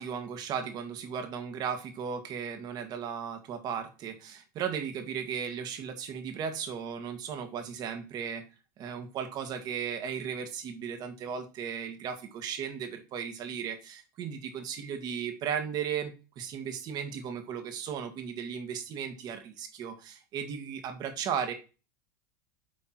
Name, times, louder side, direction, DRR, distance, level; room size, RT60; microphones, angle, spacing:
voice 1, 0.0-8.4 8.8-21.5, right 7 dB, 40° right, 6 dB, 1.9 m, -36 dB
8.3 x 4.4 x 4.5 m, 0.32 s
supercardioid pair, 120°, 10 cm